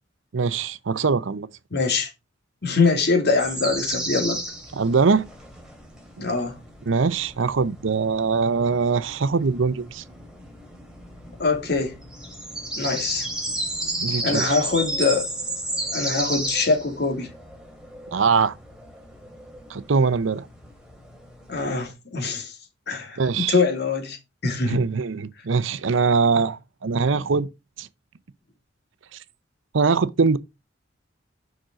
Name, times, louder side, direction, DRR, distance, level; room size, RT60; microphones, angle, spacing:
voice 1, 0.3-1.5 4.7-5.2 6.9-10.0 13.9-14.5 18.1-18.5 19.7-20.5 23.2-23.5 24.6-27.5 27.8-27.9 29.1-29.2 29.7-30.4, right 5 dB, 80° right, 0.6 m, -22 dB
voice 2, 1.7-2.1 2.6-4.4 6.2-6.6 11.4-11.9 12.8-13.3 14.2-15.3 15.9-17.3 21.5-22.6 22.9-24.2 24.4-24.8, left 4 dB, 55° left, 2.6 m, -23 dB
sound 1, 3.4-21.9, right 1 dB, 5° right, 2.5 m, -33 dB
6.5 x 6.1 x 4.9 m
head